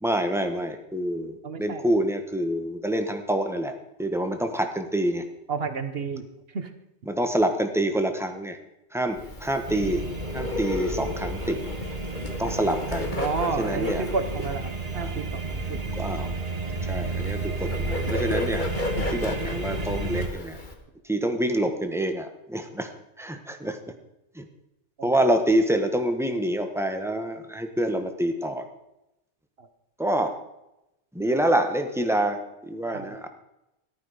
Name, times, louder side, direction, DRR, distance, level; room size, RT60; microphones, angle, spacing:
voice 1, 0.0-3.7 4.0-5.2 7.1-8.6 8.9-10.0 10.3-11.6 12.4-13.2 13.6-14.1 14.9-15.1 15.9-16.3 16.8-18.7 18.9-20.6 21.0-22.9 23.2-23.8 24.3-24.5 25.0-28.7 30.0-30.3 31.1-33.3, right 1 dB, ahead, 6 dB, 1.2 m, -26 dB
voice 2, 1.4-1.8 5.5-6.2 6.5-6.7 13.2-15.8 25.0-25.1 29.6-29.7 32.9-33.2, right 4 dB, 55° right, 9 dB, 1.3 m, -31 dB
Bird, 9.1-20.7, left 2 dB, 40° left, 1.6 m, -34 dB
sound 1, 9.7-20.3, right 3 dB, 35° right, 1.4 m, -32 dB
14.0 x 12.0 x 5.0 m, 0.90 s
omnidirectional pair, 1.2 m